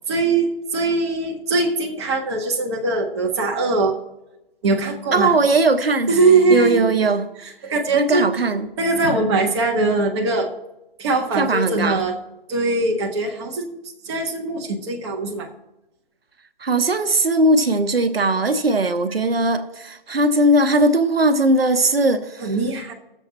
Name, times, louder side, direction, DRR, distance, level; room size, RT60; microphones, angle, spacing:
voice 1, 0.1-4.0 4.6-5.3 6.1-6.8 7.6-8.3 8.8-10.5 11.0-12.1 12.5-13.7 14.0-15.5 22.4-22.9, right 3 dB, 30° right, 1.2 m, -21 dB
voice 2, 5.1-6.2 6.5-7.3 7.6-8.7 11.4-12.0 16.6-22.6, right 2 dB, 85° right, 0.9 m, -19 dB
19.5 x 7.1 x 2.9 m
figure-of-eight pair, 145°, 29 cm